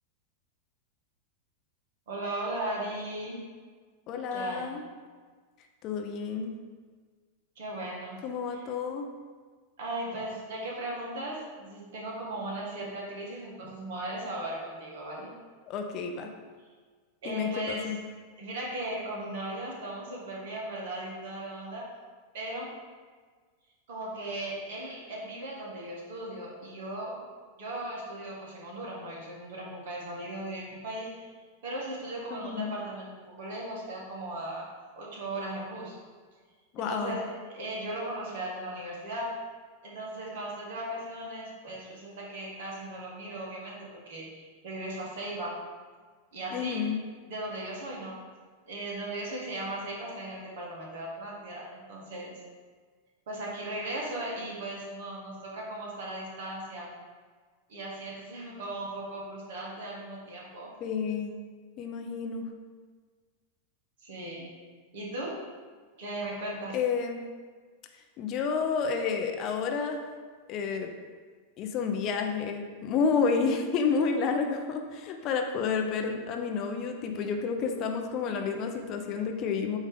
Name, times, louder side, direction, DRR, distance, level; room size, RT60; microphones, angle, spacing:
voice 1, 2.1-3.4 4.3-4.7 7.6-8.2 8.5-8.7 9.8-15.3 17.2-17.9 18.4-21.9 22.3-22.8 23.9-27.2 27.6-31.3 31.6-34.7 35.0-36.0 36.8-39.3 39.8-45.6 46.3-46.8 47.3-48.2 48.7-52.3 53.3-56.9 57.7-60.7 64.0-64.5 64.9-65.4 66.0-66.8, right 1 dB, 55° right, -3 dB, 1.9 m, -37 dB
voice 2, 4.1-4.8 5.8-6.5 8.2-9.1 15.7-16.3 17.2-18.0 32.3-32.7 36.7-37.2 46.5-47.0 60.8-61.4 61.8-62.5 66.7-67.2 68.2-70.0 70.5-70.9 71.6-79.8, left 5 dB, 35° left, 4 dB, 0.7 m, -30 dB
8.5 x 3.2 x 5.1 m, 1.5 s
figure-of-eight pair, 90°, 0 cm